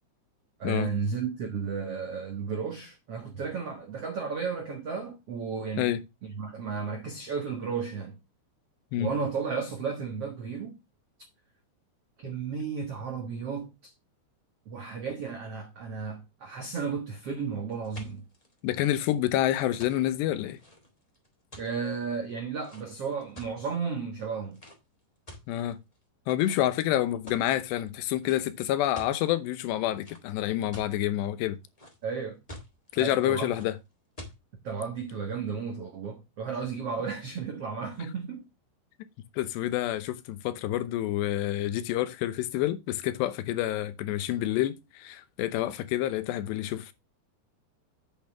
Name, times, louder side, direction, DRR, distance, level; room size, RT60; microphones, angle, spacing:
voice 1, 0.6-5.9 6.2-8.2 9.0-10.8 12.2-13.9 14.6-18.2 21.6-24.6 32.0-32.4 32.9-33.5 34.6-38.5, right 5 dB, 70° right, 1.4 m, -33 dB
sound 1, 17.7-23.8 24.5-24.8 25.3-26.0 26.4-26.8 27.3-27.7 28.2-28.4 28.7-29.2 30.0-30.9 31.4-32.1 32.5-32.9 33.5-33.7 34.2-34.4, left 1 dB, 10° left, 1.8 m, -47 dB
voice 2, 18.6-20.6 25.5-25.8 26.3-31.6 32.9-33.8 39.3-46.9, left 13 dB, 80° left, 2.9 m, -28 dB
8.4 x 8.2 x 3.4 m
omnidirectional pair, 5.1 m